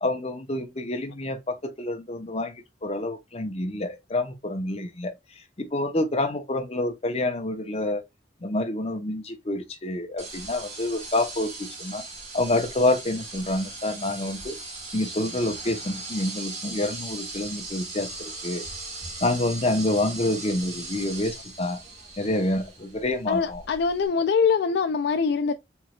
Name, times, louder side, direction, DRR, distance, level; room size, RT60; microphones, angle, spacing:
voice 1, 0.0-5.1 5.6-8.0 8.4-12.0 12.3-14.6 14.9-18.6 19.2-21.8 22.2-23.6, left 1 dB, 35° left, 0.9 m, -27 dB
sound 1, 10.2-24.1, right 3 dB, 40° right, 1.5 m, -39 dB
voice 2, 23.3-25.5, left 5 dB, 65° left, 0.3 m, -23 dB
4.5 x 3.2 x 2.3 m
head